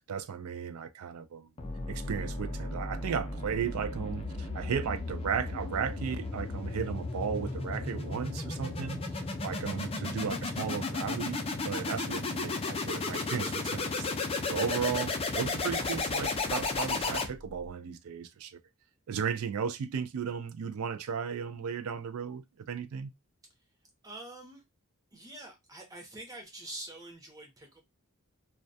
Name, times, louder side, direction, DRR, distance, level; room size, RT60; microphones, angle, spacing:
voice 1, 0.1-1.5 1.9-18.6 19.1-23.1, right 7 dB, 70° right, 0.3 m, -35 dB
sound 1, 1.6-17.7, left 3 dB, 25° left, 0.4 m, -34 dB
voice 2, 24.0-24.6 25.1-27.8, right 1 dB, 15° right, 0.7 m, -45 dB
2.2 x 2.1 x 2.6 m
head